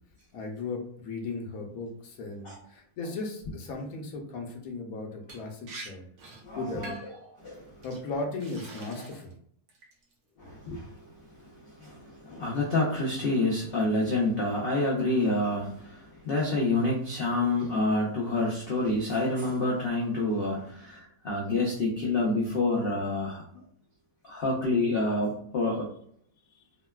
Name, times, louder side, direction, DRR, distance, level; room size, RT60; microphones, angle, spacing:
voice 1, 0.3-7.0 7.8-9.3 26.5-26.6, left 3 dB, 65° left, 0 dB, 1.0 m, -37 dB
Liquid, 5.3-5.4 5.7-5.9 6.2-6.4 6.8-7.2 7.8-8.0 8.4-9.3 9.7-10.1, right 2 dB, 65° right, 1.2 m, -44 dB
voice 2, 6.4-6.9 7.3-7.8 10.4-23.6 24.2-25.9, left 2 dB, 90° left, -3 dB, 0.5 m, -28 dB
3.8 x 2.2 x 2.2 m, 0.63 s
omnidirectional pair, 1.8 m